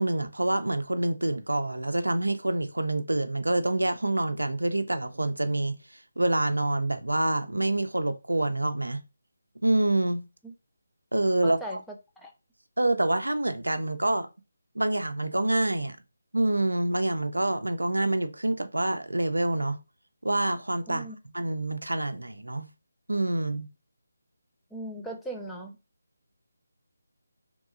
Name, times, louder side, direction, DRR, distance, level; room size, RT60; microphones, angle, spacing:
voice 1, 0.0-5.8 6.2-9.0 9.6-10.2 11.1-11.8 12.8-14.3 14.8-16.0 16.3-19.8 20.2-21.1 21.3-22.7 23.1-23.7, right 2 dB, 90° right, 0.4 m, -26 dB
voice 2, 11.4-11.8 12.2-12.3 20.9-21.2 24.7-25.7, right 1 dB, 5° left, 0.4 m, -38 dB
2.9 x 2.6 x 2.5 m
figure-of-eight pair, 155°, 0 cm